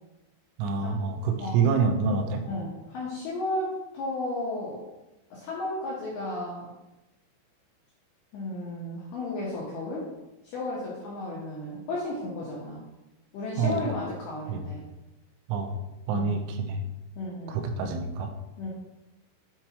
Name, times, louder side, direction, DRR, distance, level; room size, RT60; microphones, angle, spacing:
voice 1, 0.6-2.5 13.6-13.8 14.5-14.7 15.5-15.8 16.1-16.8 17.5-18.3, right 5 dB, 85° right, 4 dB, 3.4 m, -27 dB
voice 2, 2.5-4.8 5.3-6.7 8.3-10.1 10.4-12.8 13.3-14.8 16.1-16.3 17.2-17.6 18.6-18.7, left 2 dB, 75° left, -6 dB, 2.4 m, -34 dB
8.6 x 4.6 x 2.9 m, 1.0 s
omnidirectional pair, 6.0 m